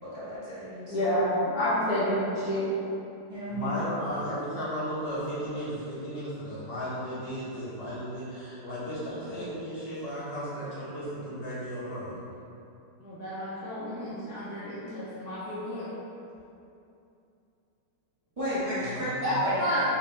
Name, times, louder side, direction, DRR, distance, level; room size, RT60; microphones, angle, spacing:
voice 1, 0.0-1.1 2.0-2.1 3.3-3.8 18.4-19.1 19.4-19.6, equal, 20° right, -12 dB, 1.5 m, -33 dB
voice 2, 0.9-2.6 13.0-15.9 19.2-19.8, equal, 65° left, -12 dB, 1.4 m, -29 dB
voice 3, 3.5-12.2 18.8-19.5, equal, 85° left, -11 dB, 2.2 m, -35 dB
4.2 x 3.6 x 3.3 m, 2.7 s
omnidirectional pair, 1.9 m